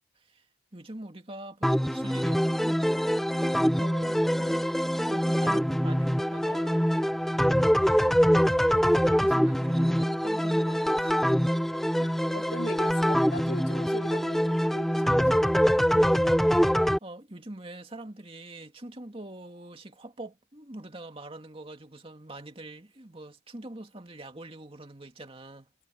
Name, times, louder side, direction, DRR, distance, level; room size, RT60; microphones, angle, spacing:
voice 1, 0.7-2.9 3.4-4.7 5.0-7.0 7.8-11.2 12.0-12.1 15.9-25.7, right 1 dB, 30° right, 2.3 m, -45 dB
sound 1, 1.6-17.0, equal, ahead, 0.7 m, -24 dB
voice 2, 12.0-15.8, left 2 dB, 55° left, 3.7 m, -41 dB
head